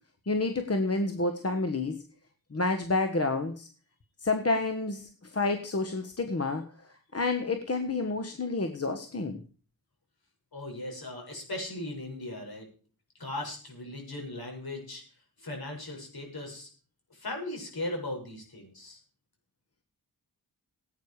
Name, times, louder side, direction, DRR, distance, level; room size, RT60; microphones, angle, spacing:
voice 1, 0.3-2.0 2.5-3.7 4.2-6.6 7.1-9.4, left 3 dB, 35° left, 6 dB, 1.5 m, -29 dB
voice 2, 10.5-12.7 13.2-15.0 15.4-16.7 17.1-19.0, left 1 dB, 60° left, 1 dB, 7.1 m, -38 dB
17.0 x 9.3 x 5.0 m, 0.41 s
cardioid pair, 70°, 41 cm